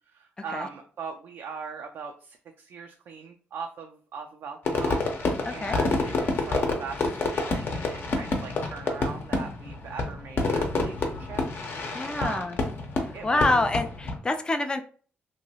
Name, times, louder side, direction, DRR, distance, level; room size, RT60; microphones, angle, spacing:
voice 1, 0.1-11.4 12.2-12.6 13.1-13.7, right 5 dB, 70° right, 4 dB, 0.3 m, -40 dB
Fireworks, 4.7-14.2, left 3 dB, 55° left, 0.7 m, -28 dB
voice 2, 5.5-5.8 11.9-12.6 13.2-14.8, left 2 dB, 20° left, 7 dB, 0.4 m, -26 dB
2.8 x 2.3 x 2.8 m, 0.42 s
cardioid pair, 70°, 4 cm